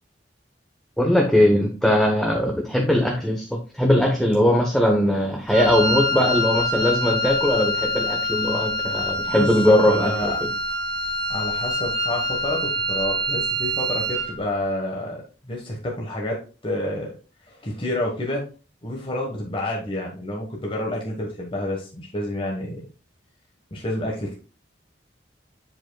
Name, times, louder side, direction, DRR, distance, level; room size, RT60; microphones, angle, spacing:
voice 1, 1.0-10.5, left 1 dB, 5° left, 1 dB, 0.9 m, -20 dB
Wind instrument woodwind instrument, 5.5-14.4, left 1 dB, 65° right, 2.7 m, -25 dB
voice 2, 9.3-10.4 11.3-17.1 17.5-18.4 18.8-22.9 23.7-24.4, left 1 dB, 30° left, -2 dB, 1.3 m, -29 dB
7.8 x 7.1 x 2.3 m, 0.35 s
head